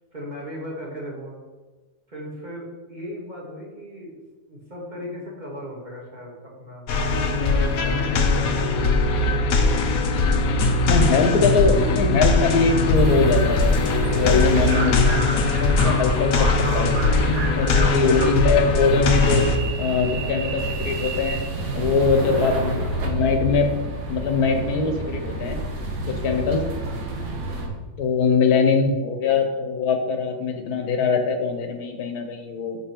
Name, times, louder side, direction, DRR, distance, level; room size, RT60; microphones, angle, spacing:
voice 1, 0.1-1.4 2.1-4.1 4.5-6.9 7.5-12.0 22.7-22.9 26.8-27.0, equal, 30° right, -4 dB, 1.9 m, -37 dB
sound 1, 6.9-19.6, left 3 dB, 70° left, 1.2 m, -21 dB
voice 2, 10.9-16.9 17.5-19.4 19.8-21.4 21.7-23.7 24.1-25.6 26.2-26.6 28.0-32.8, left 4 dB, 90° left, 5 dB, 1.5 m, -22 dB
sound 2, 12.9-27.7, right 2 dB, 65° right, 1.6 m, -29 dB
7.2 x 5.7 x 4.5 m, 1.3 s
omnidirectional pair, 1.6 m